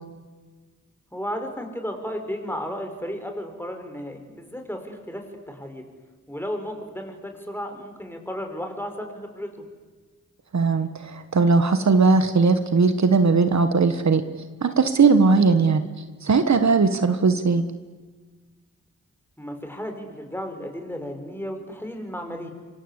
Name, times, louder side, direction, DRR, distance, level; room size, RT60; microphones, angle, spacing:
voice 1, 1.1-5.8 6.3-9.5 19.4-22.5, equal, 5° left, 5 dB, 5.3 m, -34 dB
voice 2, 10.5-14.2 14.6-15.8 16.2-17.6, right 4 dB, 65° right, 9 dB, 1.5 m, -19 dB
27.5 x 24.5 x 8.2 m, 1.4 s
wide cardioid pair, 75°, 30 cm